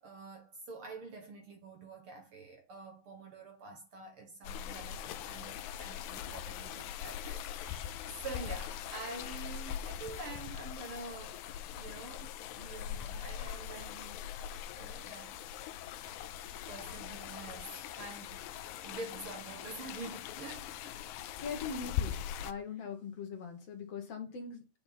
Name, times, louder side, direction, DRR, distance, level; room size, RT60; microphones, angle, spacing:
voice 1, 0.0-11.4 11.7-14.3 14.8-15.4 16.1-16.2 16.7-18.5 18.8-20.9, right 3 dB, 55° right, 1.8 m, -47 dB
sound 1, 4.4-22.5, left 10 dB, 80° left, 2.0 m, -41 dB
voice 2, 21.4-24.7, left 5 dB, 60° left, 2.3 m, -41 dB
8.8 x 5.7 x 4.0 m
omnidirectional pair, 3.5 m